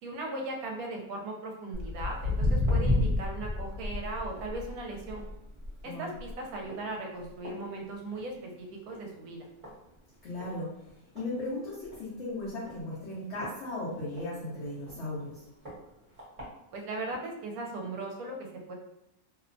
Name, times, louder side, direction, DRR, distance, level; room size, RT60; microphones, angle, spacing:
voice 1, 0.0-5.2 5.8-9.5 16.7-18.7, right 2 dB, 75° right, 1 dB, 1.0 m, -38 dB
Walk footsteps, 1.7-8.4 8.7-9.1 9.6-9.7 10.4-10.5 10.9-11.0 11.2-11.3 11.8-12.0 12.7-14.3 14.8-14.9 15.7-15.8 16.2-16.4 17.1-17.2, left 2 dB, 30° right, 0.8 m, -31 dB
voice 2, 10.2-10.7 11.1-15.4, left 2 dB, 55° left, -8 dB, 0.9 m, -36 dB
2.8 x 2.1 x 2.5 m, 0.83 s
omnidirectional pair, 1.7 m